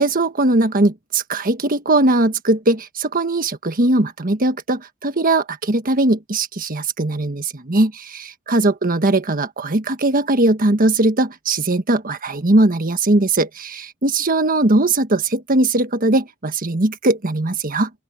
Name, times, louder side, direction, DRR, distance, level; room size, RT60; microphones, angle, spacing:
voice 1, 0.0-17.9, right 2 dB, 45° right, 1.4 m, -19 dB
open air
head